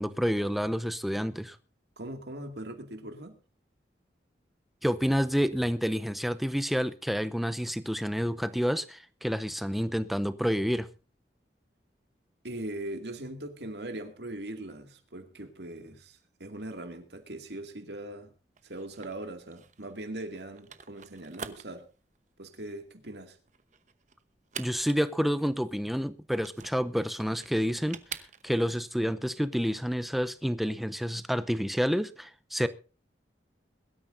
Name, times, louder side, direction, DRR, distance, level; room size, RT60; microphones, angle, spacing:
voice 1, 0.0-1.6 4.8-10.9 24.6-28.0 28.4-32.7, equal, ahead, 0.7 m, -29 dB
voice 2, 2.0-3.3 12.4-18.3 18.6-21.9 22.4-23.4, right 1 dB, 70° right, 2.3 m, -40 dB
sound 1, 18.6-28.8, right 7 dB, 45° right, 1.0 m, -46 dB
22.0 x 13.0 x 2.6 m
head